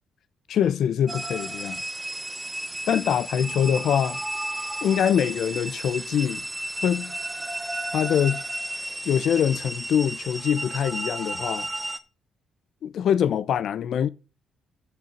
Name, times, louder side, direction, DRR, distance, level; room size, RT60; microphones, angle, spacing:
voice 1, 0.5-1.8 2.9-4.2 4.8-6.4 6.8-7.2 7.9-8.4 9.0-11.7 12.8-14.1, left 9 dB, 70° left, 0.6 m, -24 dB
sound 1, 1.1-12.0, right 1 dB, 15° right, 0.9 m, -33 dB
8.2 x 6.1 x 7.3 m
cardioid pair, 90°, 0 cm